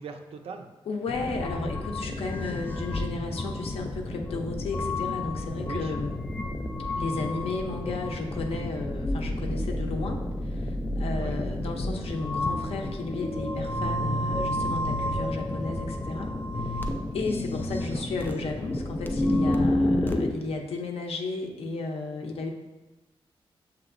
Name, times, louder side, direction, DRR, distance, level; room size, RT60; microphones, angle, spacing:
voice 1, 0.0-0.7 5.6-5.9 11.1-11.4 17.8-18.1, right 5 dB, 80° right, 6 dB, 0.4 m, -41 dB
voice 2, 0.9-6.1 6.9-10.2 10.5-16.9 17.1-22.5, left 3 dB, 85° left, 2 dB, 0.5 m, -34 dB
sound 1, 1.1-20.3, left 1 dB, 20° left, 0.3 m, -30 dB
6.7 x 3.0 x 2.5 m, 1.0 s
wide cardioid pair, 135°, 10 cm